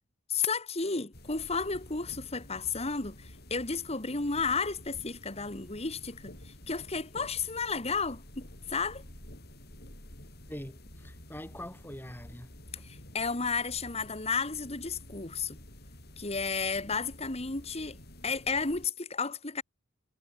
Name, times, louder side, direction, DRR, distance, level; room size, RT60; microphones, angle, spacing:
voice 1, 0.3-9.0 12.8-15.6 16.2-18.0 18.2-19.6, left 4 dB, 30° left, 1.8 m, -33 dB
sound 1, 1.1-18.9, left 1 dB, 50° left, 6.4 m, -50 dB
voice 2, 10.5-12.8, left 1 dB, 10° left, 6.6 m, -44 dB
head